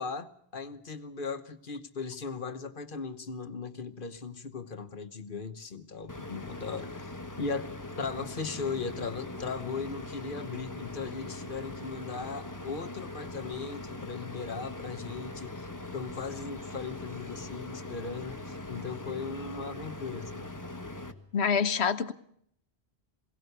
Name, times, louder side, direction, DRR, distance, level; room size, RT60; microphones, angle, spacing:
voice 1, 0.0-20.5, left 4 dB, 55° left, 1.3 m, -38 dB
sound 1, 6.1-21.1, left 2 dB, 20° left, 1.3 m, -41 dB
voice 2, 21.3-22.1, left 6 dB, 85° left, 1.3 m, -26 dB
22.0 x 17.5 x 6.7 m
omnidirectional pair, 1.1 m